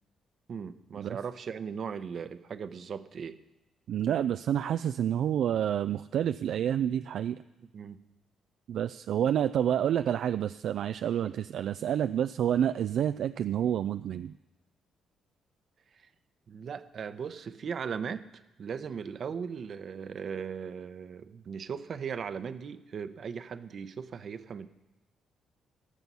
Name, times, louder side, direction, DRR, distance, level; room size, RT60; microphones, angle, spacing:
voice 1, 0.5-3.4 7.6-8.0 15.9-16.1 16.5-18.2 18.6-24.7, right 6 dB, 55° right, 11 dB, 0.8 m, -38 dB
voice 2, 3.9-7.4 8.7-14.3, right 10 dB, 70° right, 11 dB, 0.3 m, -28 dB
18.0 x 7.0 x 5.5 m, 1.0 s
cardioid pair, 90°, 0 cm